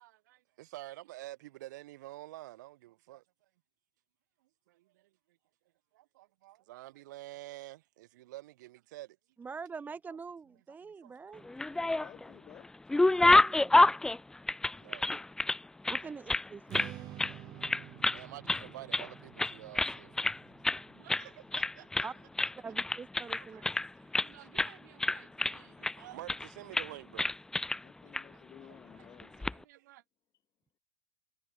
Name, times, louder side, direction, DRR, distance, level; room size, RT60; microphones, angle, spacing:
voice 1, 0.0-3.2 4.7-5.1 5.9-9.2 10.8-12.0 13.5-13.8 14.7-15.1 16.0-16.1 16.8-20.3 20.7-22.1 23.2-23.7 24.0-27.3 27.6-27.7 28.1-28.8 29.2-30.0, right 17 dB, 70° right, 5.2 m, -50 dB
voice 2, 9.4-11.4 13.3-13.8 15.1-15.2 15.9-17.0 22.0-22.1 22.6-23.6, right 5 dB, 15° right, 0.9 m, -44 dB
sound 1, 11.4-12.3 12.6-15.6 15.8-16.9 17.2-17.4 17.6-18.2 18.5-19.1 19.4-20.4 20.6-20.8 21.1-21.3 21.5-22.1 22.4-24.3 24.6-24.7 25.0-25.9 26.3-26.5 26.7-26.9 27.2-27.8 28.1-28.2 29.2-29.5, left 2 dB, 5° left, 0.4 m, -28 dB
voice 3, 11.9-12.7 18.5-18.7 27.8-29.5, left 11 dB, 35° left, 2.7 m, -55 dB
Strum, 16.7-23.0, right 15 dB, 40° right, 1.1 m, -50 dB
hypercardioid pair, 110°, 10 cm